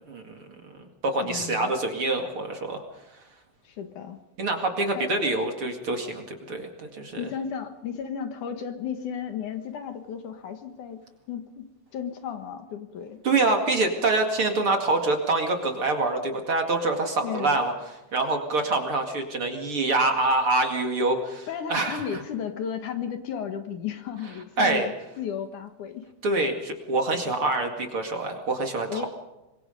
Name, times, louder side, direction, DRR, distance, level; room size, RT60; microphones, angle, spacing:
voice 1, 0.1-0.4 0.6-0.7 1.0-2.8 4.4-7.3 13.2-17.7 18.1-22.0 24.6-24.9 26.2-29.1, right 2 dB, 40° right, 4 dB, 2.7 m, -25 dB
voice 2, 1.2-1.7 3.6-4.2 4.9-5.1 7.2-11.0 11.3-13.2 17.2-17.6 21.5-26.1 28.9-29.1, left 8 dB, 65° left, 7 dB, 2.7 m, -34 dB
25.5 x 22.0 x 5.2 m, 0.99 s
omnidirectional pair, 4.1 m